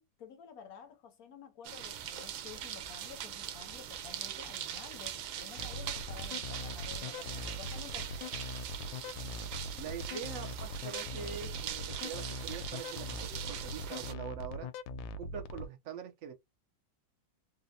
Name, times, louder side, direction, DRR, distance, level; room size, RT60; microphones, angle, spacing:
voice 1, 0.0-8.4, left 7 dB, 65° left, 0.9 m, -51 dB
sound 1, 1.6-14.1, right 10 dB, 85° right, 1.4 m, -42 dB
sound 2, 5.6-15.7, left 2 dB, 85° left, 1.3 m, -41 dB
voice 2, 9.8-14.7 15.2-16.3, right 7 dB, 60° right, 0.9 m, -44 dB
4.1 x 2.1 x 2.7 m
omnidirectional pair, 2.1 m